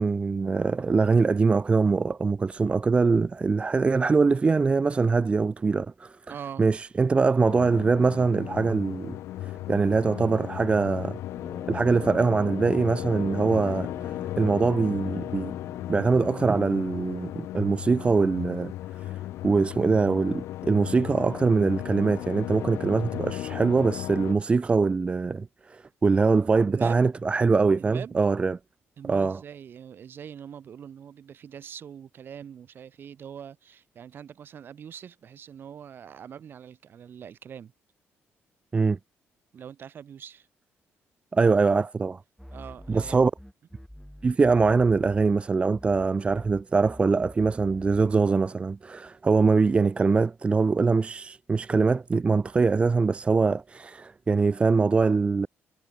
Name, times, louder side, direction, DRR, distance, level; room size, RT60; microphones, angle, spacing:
voice 1, 0.0-9.2 9.4-11.2 11.7-15.5 15.9-18.7 19.0-19.2 19.4-28.6 29.1-29.4 38.7-39.0 41.3-42.2 42.9-43.3 44.2-55.5, right 4 dB, 25° right, 0.7 m, -23 dB
voice 2, 6.3-6.7 26.7-27.0 27.8-28.2 29.0-37.7 39.5-40.5 42.5-43.2, right 8 dB, 50° right, 4.5 m, -42 dB
sound 1, 7.4-24.3, left 14 dB, 85° left, 3.8 m, -36 dB
Brass instrument, 11.3-17.2, left 5 dB, 35° left, 2.1 m, -41 dB
sound 2, 42.4-45.5 45.7-48.3, equal, ahead, 3.3 m, -46 dB
cardioid pair, 115°, 5 cm